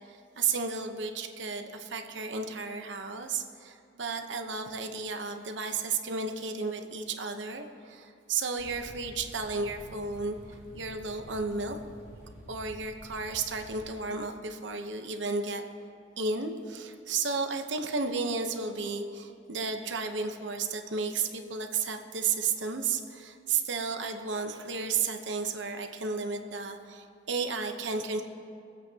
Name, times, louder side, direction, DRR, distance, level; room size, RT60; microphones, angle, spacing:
voice 1, 0.0-11.8 12.5-15.6 16.2-28.2, right 4 dB, 70° right, 5 dB, 0.9 m, -33 dB
sound 1, 8.6-13.9, equal, 15° right, 2.1 m, -49 dB
24.5 x 8.3 x 2.9 m, 2.5 s
head